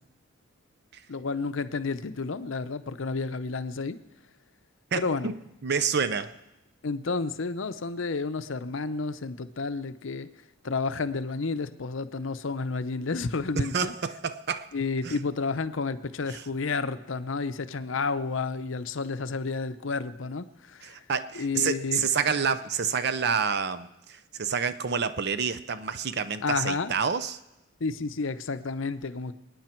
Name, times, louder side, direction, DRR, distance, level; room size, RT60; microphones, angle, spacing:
voice 1, 1.1-4.0 4.9-5.3 6.8-10.3 10.6-13.9 14.7-21.0 21.3-22.0 26.4-26.9 27.8-29.3, left 4 dB, 70° left, 12 dB, 0.7 m, -31 dB
voice 2, 4.9-6.3 13.7-14.7 15.0-15.2 16.3-16.4 20.8-27.4, right 6 dB, 55° right, 12 dB, 0.6 m, -28 dB
26.5 x 9.8 x 4.5 m, 0.92 s
head